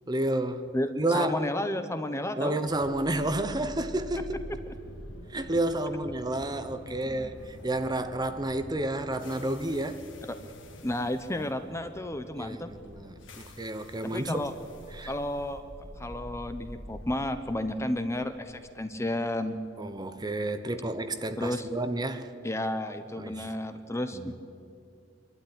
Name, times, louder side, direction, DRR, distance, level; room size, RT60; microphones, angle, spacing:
voice 1, 0.1-0.7 1.0-1.4 2.4-4.5 5.3-10.0 12.4-14.4 14.9-15.1 19.8-22.3 23.2-23.5 24.1-24.3, right 1 dB, 20° right, 1.0 m, -30 dB
voice 2, 0.7-2.6 4.7-4.8 7.0-7.3 10.3-10.4 10.8-12.7 14.0-14.5 15.1-15.6 16.0-19.6 21.4-21.7 22.4-24.3, left 1 dB, 15° left, 0.9 m, -32 dB
sound 1, 2.7-20.7, left 1 dB, 85° left, 1.8 m, -46 dB
24.5 x 12.5 x 10.0 m
head